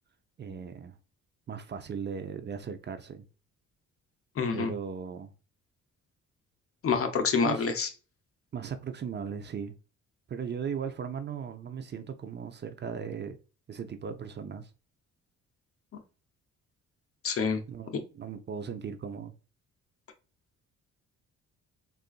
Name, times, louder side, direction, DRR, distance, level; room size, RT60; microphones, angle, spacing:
voice 1, 0.4-1.0 1.5-3.3 4.5-5.3 7.4-7.7 8.5-9.8 10.3-13.4 13.7-14.7 17.7-19.3, right 6 dB, 35° right, 0.5 m, -37 dB
voice 2, 4.4-4.7 6.8-7.9 17.2-17.6, left 5 dB, 50° left, 0.8 m, -27 dB
3.7 x 2.4 x 2.4 m
cardioid pair, 90°, 30 cm